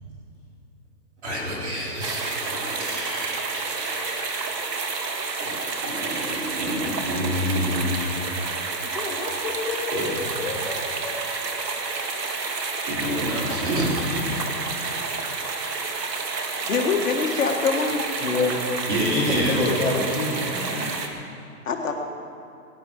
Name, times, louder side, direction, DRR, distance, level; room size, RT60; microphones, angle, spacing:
voice 1, 1.2-4.3 5.4-5.5 5.8-8.3 9.9-10.1 12.9-13.9 18.9-19.7, equal, 45° right, -3 dB, 4.0 m, -28 dB
sound 1, 2.0-21.1, right 4 dB, 85° right, 2.1 m, -29 dB
voice 2, 8.9-11.3, left 4 dB, 30° left, -2 dB, 2.0 m, -33 dB
voice 3, 16.6-18.1 21.6-21.9, left 5 dB, 55° left, 2 dB, 1.7 m, -24 dB
voice 4, 18.2-18.7 19.0-20.9, left 2 dB, 5° left, -14 dB, 1.5 m, -26 dB
18.5 x 11.0 x 6.4 m, 2.7 s
hypercardioid pair, 175°, 48 cm